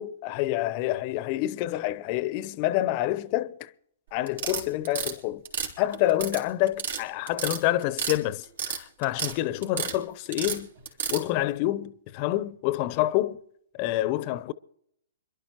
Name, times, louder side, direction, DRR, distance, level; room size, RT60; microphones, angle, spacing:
voice 1, 0.0-3.7 4.1-5.4 5.8-10.7 11.1-13.4 13.7-14.5, left 15 dB, 40° left, 0.7 m, -27 dB
sound 1, 4.3-5.1 5.4-6.4 6.7-7.0 7.3-8.2 8.4-9.3 9.6-9.9 10.3-11.2, right 7 dB, 70° right, 3.4 m, -30 dB
26.5 x 12.0 x 3.0 m
hypercardioid pair, 120°, 0 cm